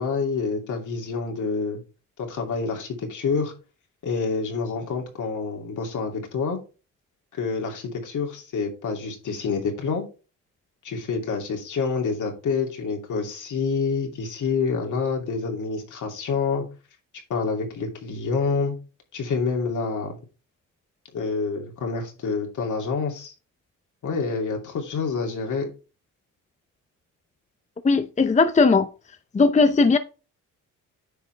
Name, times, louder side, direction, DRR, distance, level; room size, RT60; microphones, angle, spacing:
voice 1, 0.0-1.8 2.2-3.5 4.0-6.6 7.3-10.1 10.8-16.6 17.3-18.7 19.1-20.2 21.1-23.3 24.0-25.7, left 4 dB, 65° left, 2.8 m, -27 dB
voice 2, 27.8-28.9 29.3-30.0, left 4 dB, 20° left, 0.7 m, -18 dB
9.7 x 5.8 x 3.4 m
cardioid pair, 90°, 33 cm